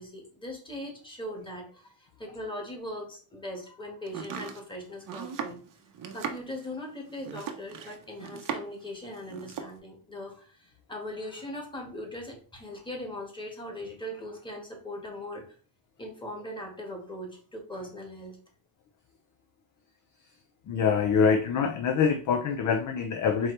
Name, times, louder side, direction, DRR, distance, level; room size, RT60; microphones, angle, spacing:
voice 1, 0.0-5.6 6.1-15.4 16.0-18.4, left 1 dB, 10° left, 1 dB, 1.5 m, -40 dB
Domestic sounds home sounds, 4.1-8.9 9.1-9.8, right 7 dB, 40° right, 0.7 m, -38 dB
voice 2, 20.7-23.5, left 6 dB, 40° left, 6 dB, 0.5 m, -25 dB
4.5 x 2.9 x 3.2 m, 0.40 s
cardioid pair, 105°, 49 cm